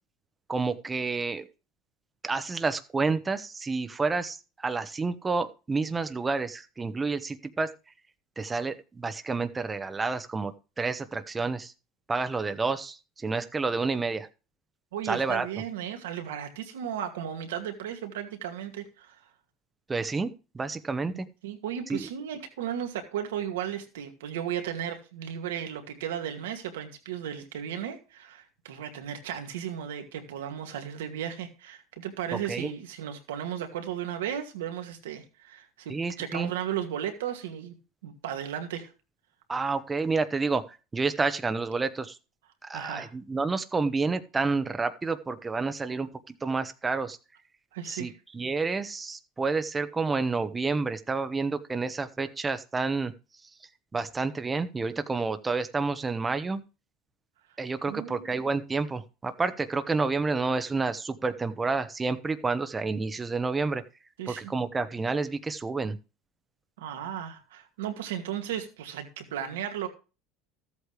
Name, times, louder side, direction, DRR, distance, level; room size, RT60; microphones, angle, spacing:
voice 1, 0.5-1.4 2.2-7.7 8.4-10.5 10.8-11.7 12.1-14.3 15.0-15.5 19.9-20.3 20.5-21.3 21.9-22.1 32.5-32.7 35.9-36.5 39.5-42.2 42.6-47.2 47.8-53.1 53.9-56.6 57.6-63.8 64.3-66.0, right 4 dB, 20° right, 10 dB, 1.1 m, -29 dB
voice 2, 14.9-19.2 21.4-37.7 38.0-38.9 42.7-43.1 47.7-48.1 57.8-58.3 64.2-64.5 66.8-69.9, right 9 dB, 85° right, 5 dB, 2.2 m, -35 dB
13.5 x 8.2 x 3.3 m, 0.32 s
supercardioid pair, 95°, 0 cm